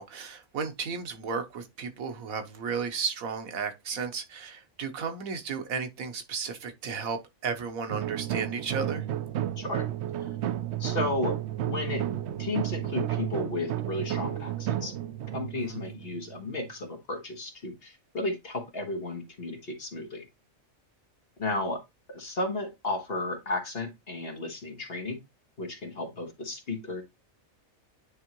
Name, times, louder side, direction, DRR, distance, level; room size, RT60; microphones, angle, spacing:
voice 1, 0.0-9.0 15.6-15.8, right 5 dB, 90° right, 1.5 m, -34 dB
sound 1, 7.9-16.7, right 12 dB, 65° right, 0.7 m, -32 dB
voice 2, 9.6-9.9 10.8-11.4 11.6-12.0 12.4-15.0 15.3-20.3 21.4-21.8 22.1-25.2 25.6-27.0, left 2 dB, 45° left, 1.6 m, -33 dB
9.6 x 3.6 x 3.0 m
omnidirectional pair, 1.4 m